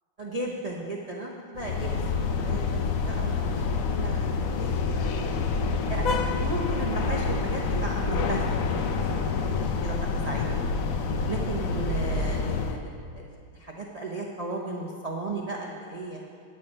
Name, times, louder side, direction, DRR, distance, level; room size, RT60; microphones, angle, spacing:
voice 1, 0.2-5.5 5.9-10.8 11.3-16.2, right 2 dB, 45° right, -2 dB, 0.5 m, -36 dB
sound 1, 1.6-12.8, left 4 dB, 65° left, 0.9 m, -27 dB
9.3 x 8.8 x 5.3 m, 2.2 s
omnidirectional pair, 2.0 m